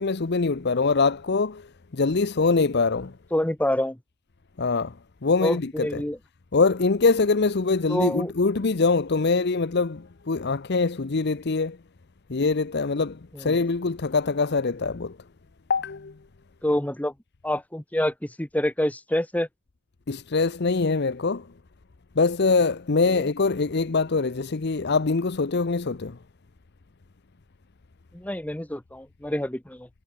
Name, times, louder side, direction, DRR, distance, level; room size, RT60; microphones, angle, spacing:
voice 1, 0.0-1.7 1.9-3.1 4.6-5.0 5.2-6.0 6.5-11.8 12.3-15.2 15.7-16.1 20.1-21.5 22.2-26.2, left 4 dB, 50° left, 0.7 m, -23 dB
voice 2, 3.3-4.0 5.4-6.2 7.9-8.3 13.3-13.6 16.6-17.1 17.4-19.5 23.1-23.3 28.1-29.9, left 1 dB, 5° left, 0.9 m, -27 dB
head